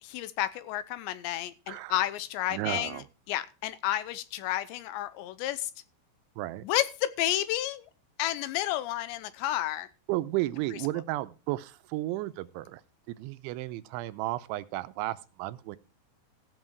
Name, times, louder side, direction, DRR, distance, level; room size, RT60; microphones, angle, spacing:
voice 1, 0.0-3.0 3.3-5.7 6.6-7.9 8.2-9.9, left 13 dB, 80° left, 2.9 m, -31 dB
voice 2, 2.5-3.1 6.4-6.7 10.1-12.8 13.1-15.8, right 17 dB, 85° right, 3.1 m, -33 dB
14.5 x 7.7 x 4.6 m
omnidirectional pair, 5.3 m